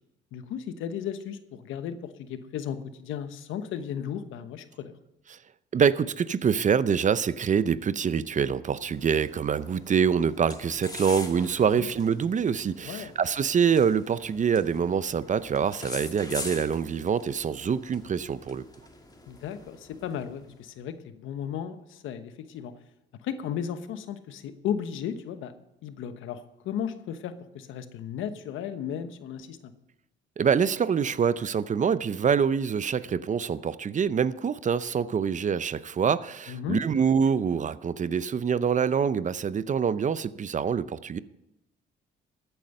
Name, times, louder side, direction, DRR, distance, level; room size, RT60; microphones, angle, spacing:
voice 1, 0.3-4.9 11.8-11.9 12.8-13.1 19.3-22.7 23.2-25.5 25.8-29.7 36.5-36.8, left 8 dB, 85° left, 1.1 m, -35 dB
voice 2, 5.7-18.6 30.4-41.2, right 7 dB, 40° right, 0.6 m, -25 dB
sound 1, 8.8-20.5, left 2 dB, 20° left, 1.9 m, -44 dB
14.0 x 9.2 x 5.4 m
cardioid pair, 90°, 20 cm